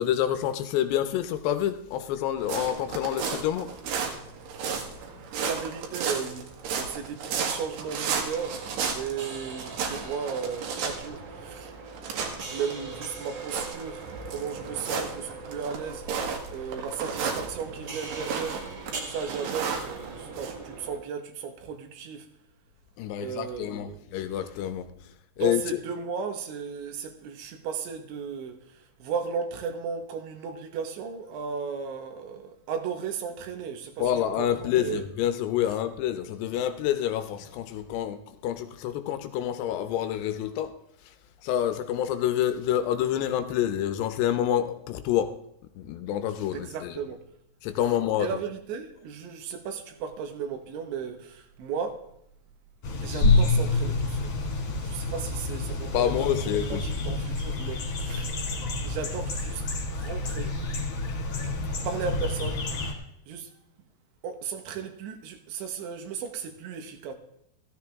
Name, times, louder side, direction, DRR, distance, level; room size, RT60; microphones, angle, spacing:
voice 1, 0.0-3.7 23.0-24.9 25.4-25.6 34.0-40.7 41.4-45.3 45.8-47.0 47.6-48.3 55.9-56.8, left 11 dB, 80° left, 2.8 m, -27 dB
sound 1, 2.4-20.5, right 5 dB, 70° right, 3.7 m, -34 dB
voice 2, 5.4-6.5 6.8-11.8 12.5-18.6 19.1-22.3 23.2-24.0 25.4-35.0 46.5-47.2 48.2-52.1 53.0-54.3 54.8-56.0 56.6-58.3 58.8-59.6 59.9-60.6 61.9-62.6 63.3-63.5 64.2-67.1, right 6 dB, 85° right, 3.7 m, -35 dB
sound 2, 8.2-21.0, right 4 dB, 45° right, 2.4 m, -42 dB
sound 3, 52.8-62.9, left 3 dB, 50° left, 3.3 m, -28 dB
14.5 x 13.5 x 3.6 m
omnidirectional pair, 5.1 m